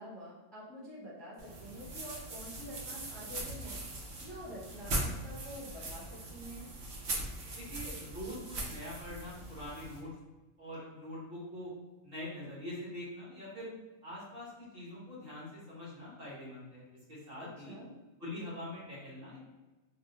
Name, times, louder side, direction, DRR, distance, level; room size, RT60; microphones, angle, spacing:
voice 1, 0.0-6.7 17.4-18.0, equal, ahead, -7 dB, 0.5 m, -47 dB
sound 1, 1.4-10.0, right 2 dB, 75° right, 1.0 m, -40 dB
voice 2, 7.5-10.1 10.6-11.7 12.0-13.7 14.0-16.8 17.1-17.7 18.2-19.4, left 1 dB, 50° right, -6 dB, 1.2 m, -44 dB
2.7 x 2.1 x 3.7 m, 1.2 s
omnidirectional pair, 1.3 m